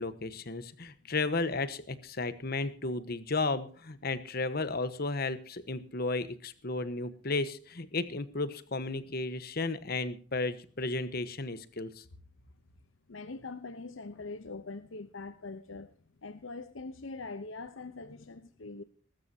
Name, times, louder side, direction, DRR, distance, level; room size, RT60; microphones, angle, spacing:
voice 1, 0.0-12.0, left 3 dB, 50° left, 13 dB, 1.2 m, -34 dB
voice 2, 13.1-15.9 16.2-18.8, left 3 dB, 75° left, 11 dB, 0.8 m, -42 dB
21.0 x 13.0 x 2.8 m, 0.42 s
head